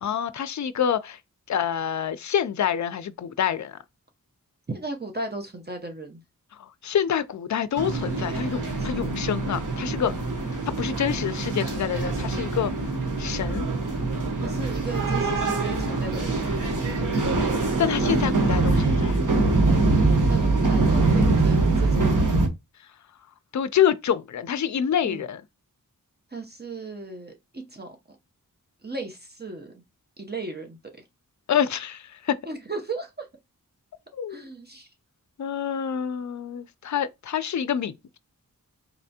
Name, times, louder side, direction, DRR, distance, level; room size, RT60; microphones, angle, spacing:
voice 1, 0.0-1.2 1.5-3.8 6.6-10.1 10.8-12.7 13.2-13.7 17.8-19.2 23.5-25.4 31.5-32.4 34.1-34.5 35.4-38.2, left 9 dB, 55° left, 0.4 m, -27 dB
voice 2, 4.7-6.2 8.8-9.1 14.4-16.5 20.2-22.3 25.0-25.2 26.3-28.0 28.8-29.7 30.2-30.8 32.5-33.3 34.3-34.9, right 3 dB, 30° right, 0.7 m, -36 dB
sound 1, 7.8-22.5, right 3 dB, 60° right, 1.1 m, -23 dB
4.1 x 3.3 x 2.7 m
wide cardioid pair, 80°, 34 cm